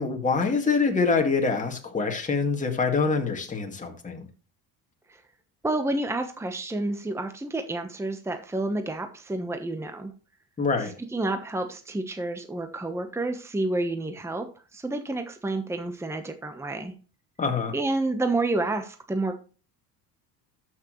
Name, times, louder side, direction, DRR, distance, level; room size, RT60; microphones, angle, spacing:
voice 1, 0.0-4.3 10.6-10.9 17.4-17.7, left 4 dB, 20° left, 2 dB, 2.0 m, -25 dB
voice 2, 5.6-10.1 11.1-16.9 17.7-19.4, right 2 dB, 5° right, 7 dB, 1.1 m, -29 dB
13.0 x 6.4 x 3.1 m, 0.36 s
supercardioid pair, 100°, 40 cm